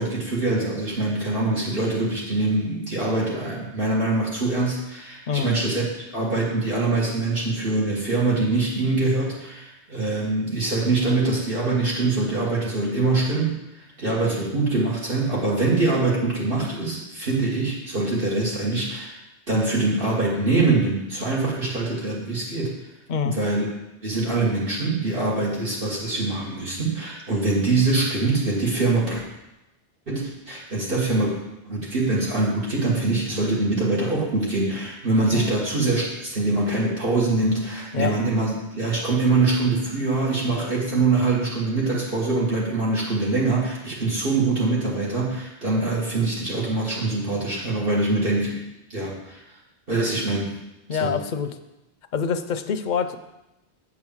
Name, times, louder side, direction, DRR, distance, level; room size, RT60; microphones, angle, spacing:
voice 1, 0.0-5.8 6.1-19.1 19.5-22.7 23.2-23.7 24.0-29.2 30.1-31.3 31.7-48.6 48.9-49.4 49.9-50.5 51.0-51.2, right 3 dB, 65° right, -6 dB, 1.9 m, -24 dB
voice 2, 50.9-51.5 52.1-53.2, left 6 dB, 55° left, 9 dB, 0.7 m, -25 dB
8.5 x 4.8 x 7.2 m, 0.93 s
omnidirectional pair, 1.0 m